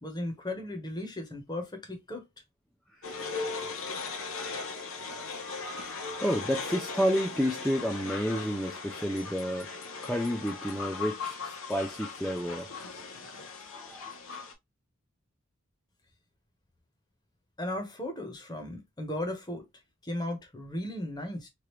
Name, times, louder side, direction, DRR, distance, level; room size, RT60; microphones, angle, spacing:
voice 1, 0.0-2.3 17.6-19.7 20.0-21.5, left 1 dB, 20° left, 0.8 m, -36 dB
sound 1, 3.0-14.5, left 4 dB, 75° left, 0.9 m, -38 dB
voice 2, 3.0-3.4 5.3-12.7 13.7-14.2, equal, ahead, 0.3 m, -31 dB
3.2 x 2.4 x 3.0 m
head